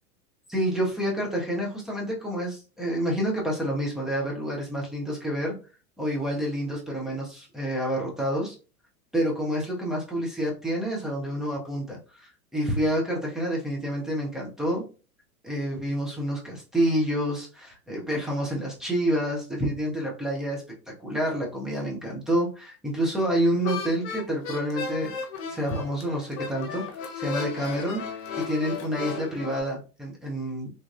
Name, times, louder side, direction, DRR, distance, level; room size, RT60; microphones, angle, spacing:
voice 1, 0.5-5.6 6.0-8.6 9.1-14.8 15.4-20.6 21.0-25.1 25.5-26.8 27.1-28.0 28.5-30.7, equal, ahead, -2 dB, 0.3 m, -28 dB
sound 1, 23.6-29.6, left 5 dB, 45° left, 0.9 m, -35 dB
3.2 x 2.2 x 2.4 m, 0.34 s
hypercardioid pair, 100°, 46 cm